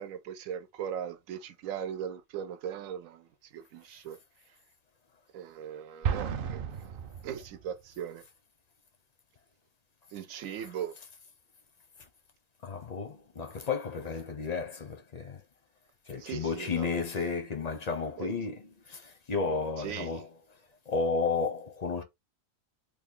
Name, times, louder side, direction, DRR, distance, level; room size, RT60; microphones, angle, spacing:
voice 1, 0.0-4.2 5.3-6.9 7.2-8.2 10.1-10.9 16.2-16.9 18.2-18.3 19.8-20.2, right 9 dB, 80° right, 1.0 m, -39 dB
Explosion, 6.0-7.9, right 8 dB, 60° right, 0.5 m, -33 dB
voice 2, 12.6-15.4 16.1-18.6 18.9-20.3 20.9-22.0, left 4 dB, 50° left, 0.5 m, -32 dB
3.3 x 2.3 x 3.6 m
omnidirectional pair, 1.4 m